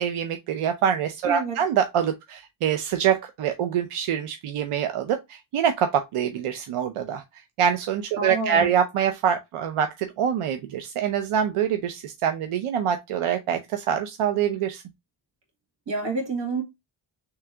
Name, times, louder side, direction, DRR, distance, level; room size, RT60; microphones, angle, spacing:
voice 1, 0.0-7.2 7.6-14.8, right 8 dB, 90° right, 0.6 m, -25 dB
voice 2, 1.2-1.6 8.2-8.7 15.9-16.6, right 3 dB, 60° right, 2.1 m, -28 dB
3.4 x 3.1 x 3.3 m
wide cardioid pair, 140°, 49 cm